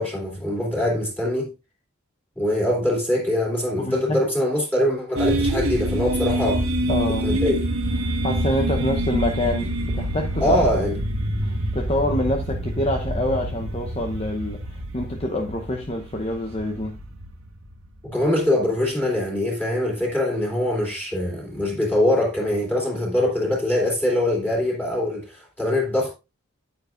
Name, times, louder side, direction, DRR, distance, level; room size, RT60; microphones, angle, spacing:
voice 1, 0.0-1.5 2.4-6.6 7.2-7.7 10.4-10.9 18.0-26.1, left 1 dB, 10° left, 2.9 m, -23 dB
voice 2, 3.8-4.2 6.9-7.3 8.0-10.8 11.7-17.0, left 1 dB, 30° left, 0.9 m, -26 dB
sound 1, 5.2-18.1, right 1 dB, 90° right, 1.4 m, -26 dB
9.6 x 9.4 x 2.5 m
head